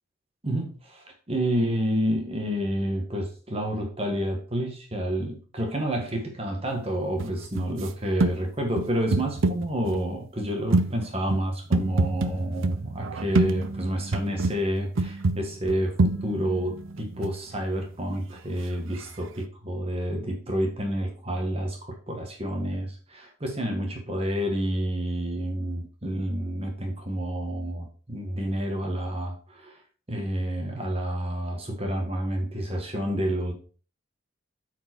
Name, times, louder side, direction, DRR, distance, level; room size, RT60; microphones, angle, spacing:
voice 1, 0.4-29.8 30.1-33.5, equal, 30° right, 2 dB, 1.5 m, -29 dB
sound 1, 7.2-7.9 8.2-8.4 8.8-10.0 10.7-14.6 15.0-17.6 19.0-19.1, right 2 dB, 75° right, 0.6 m, -26 dB
8.8 x 4.6 x 4.4 m, 0.39 s
head